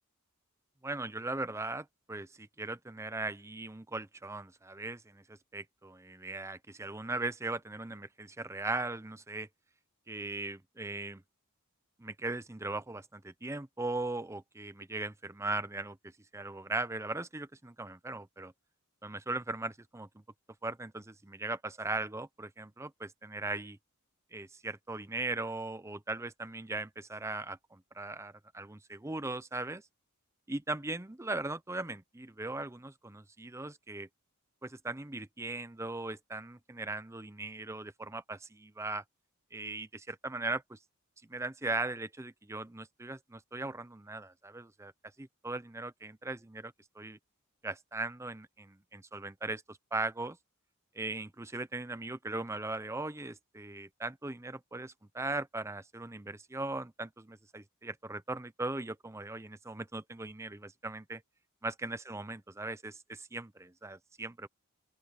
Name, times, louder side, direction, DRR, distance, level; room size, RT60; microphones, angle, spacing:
voice 1, 0.8-9.5 10.1-11.2 12.0-18.5 19.0-20.2 20.6-23.8 24.3-29.8 30.5-34.1 34.6-39.0 39.5-40.8 41.3-44.9 45.2-47.2 47.6-50.4 50.9-61.2 61.6-64.5, right 2 dB, 15° right, 0.6 m, -39 dB
open air
head